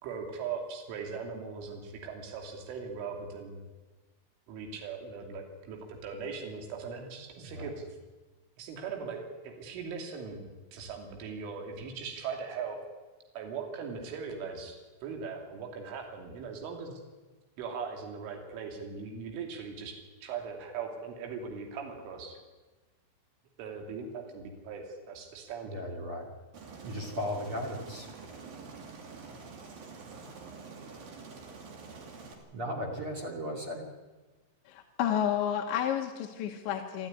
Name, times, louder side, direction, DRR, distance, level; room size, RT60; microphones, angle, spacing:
voice 1, 0.0-3.6 4.5-7.9 8.6-12.8 13.4-17.0 17.6-22.4 23.6-25.9, right 5 dB, 75° right, 2 dB, 5.3 m, -40 dB
voice 2, 7.4-7.7 25.6-26.3 26.8-28.1 32.5-33.8, equal, 35° right, 0 dB, 2.5 m, -36 dB
Aircraft, 26.5-32.3, right 4 dB, 50° right, 4.1 m, -47 dB
voice 3, 34.7-37.1, left 9 dB, 70° left, 2 dB, 3.4 m, -30 dB
27.5 x 13.0 x 9.7 m, 1.2 s
omnidirectional pair, 5.8 m